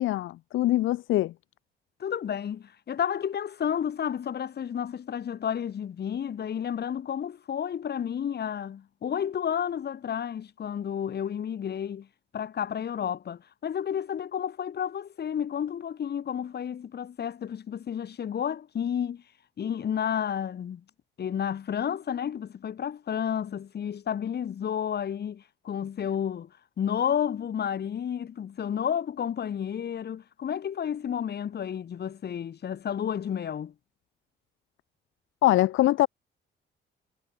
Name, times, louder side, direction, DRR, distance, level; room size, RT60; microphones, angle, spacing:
voice 1, 0.0-1.3 35.4-36.1, left 15 dB, 80° left, 1.0 m, -23 dB
voice 2, 2.0-12.1 12.3-19.2 19.6-20.8 21.2-26.5 26.8-33.7, left 8 dB, 55° left, 3.0 m, -31 dB
cardioid pair, 90°, 20 cm